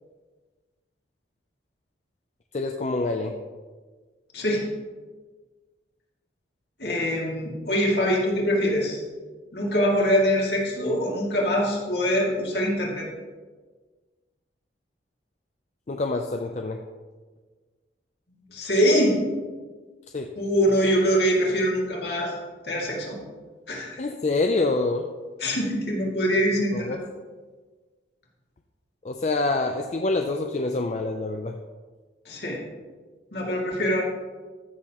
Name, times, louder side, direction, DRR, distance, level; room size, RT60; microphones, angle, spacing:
voice 1, 2.5-3.4 15.9-16.8 20.1-20.3 24.0-25.1 26.7-27.0 29.0-31.6, left 2 dB, 40° left, 4 dB, 0.4 m, -26 dB
voice 2, 6.8-9.0 9.5-13.1 18.5-19.2 20.4-22.3 22.6-23.2 23.7-23.9 25.4-27.0 32.3-32.6 33.3-34.0, equal, 65° left, -3 dB, 2.3 m, -23 dB
14.0 x 6.6 x 3.0 m, 1.4 s
head